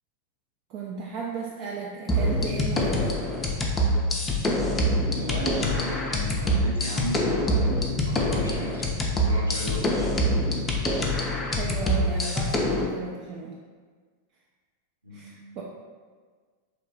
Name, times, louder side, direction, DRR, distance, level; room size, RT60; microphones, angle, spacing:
voice 1, 0.7-3.2 11.4-13.5 15.1-15.6, right 4 dB, 40° right, -3 dB, 0.4 m, -35 dB
sound 1, 2.1-12.9, left 1 dB, 15° left, 0.5 m, -25 dB
voice 2, 5.1-8.8 9.1-10.8 15.0-15.6, equal, 80° right, -3 dB, 0.6 m, -35 dB
2.9 x 2.1 x 4.1 m, 1.5 s
figure-of-eight pair, 90°, 0 cm